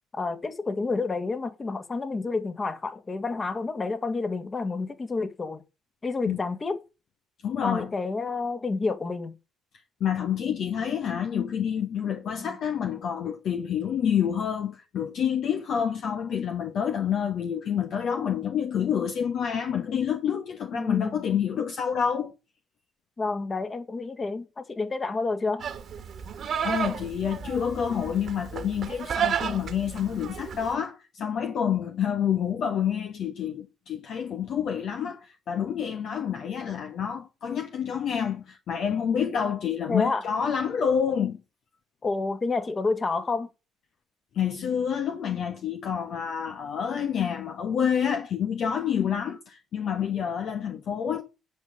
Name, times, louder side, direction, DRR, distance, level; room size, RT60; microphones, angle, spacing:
voice 1, 0.1-5.6 6.0-6.8 7.6-9.3 12.4-12.6 20.7-21.2 23.2-25.7 39.9-40.2 42.0-43.5, left 3 dB, 30° left, 1.9 m, -29 dB
voice 2, 7.4-7.9 10.0-22.3 26.6-41.4 44.3-51.2, left 8 dB, 55° left, 1.1 m, -28 dB
Livestock farm animals working animals, 25.6-30.7, right 7 dB, 50° right, 1.6 m, -32 dB
9.5 x 5.6 x 6.4 m
hypercardioid pair, 55°, 0 cm